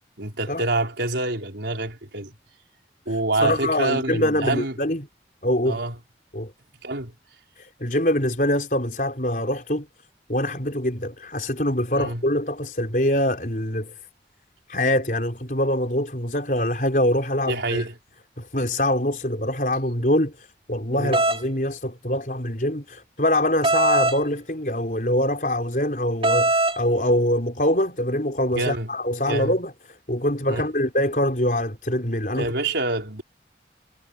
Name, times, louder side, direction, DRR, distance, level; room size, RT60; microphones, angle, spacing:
voice 1, 0.2-2.3 3.1-4.8 5.7-6.0 6.8-7.1 11.9-12.2 17.5-17.9 20.9-21.2 28.6-28.9 29.3-29.6 30.5-30.6 32.3-33.2, right 2 dB, 85° right, 4.4 m, -26 dB
voice 2, 3.4-5.1 5.4-5.8 6.3-6.5 7.8-9.8 10.3-13.9 14.7-17.9 18.4-20.3 20.7-29.7 30.1-32.5, left 1 dB, 50° left, 5.2 m, -24 dB
A Berlin Door Bell, 21.1-21.4 23.6-24.2 26.2-26.8, right 2 dB, 30° right, 2.9 m, -20 dB
head